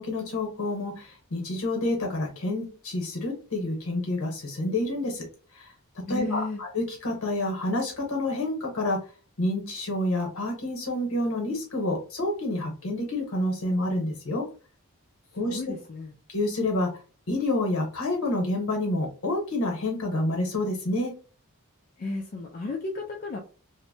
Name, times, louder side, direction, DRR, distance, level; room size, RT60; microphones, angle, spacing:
voice 1, 0.0-5.2 6.1-9.0 9.4-14.4 15.3-15.6 16.3-16.9 17.3-21.1, left 1 dB, 70° left, 2 dB, 0.9 m, -28 dB
voice 2, 6.1-6.6 15.5-16.1 22.0-23.4, left 3 dB, 40° left, 0 dB, 0.3 m, -33 dB
2.6 x 2.1 x 2.6 m, 0.37 s
head